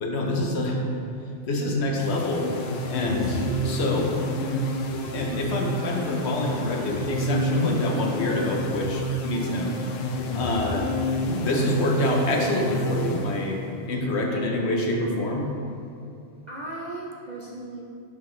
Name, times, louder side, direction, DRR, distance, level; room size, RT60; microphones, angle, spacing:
voice 1, 0.0-0.8 1.5-2.5 2.8-3.4 3.6-4.1 5.1-9.8 10.3-10.9 11.4-13.6 13.9-15.5, left 1 dB, 60° left, 0 dB, 1.0 m, -26 dB
sound 1, 2.0-13.8, equal, 85° left, 1.0 m, -28 dB
voice 2, 3.2-3.8 16.5-17.8, right 2 dB, 50° right, -4 dB, 0.5 m, -37 dB
6.3 x 5.6 x 3.1 m, 2.5 s
omnidirectional pair, 1.3 m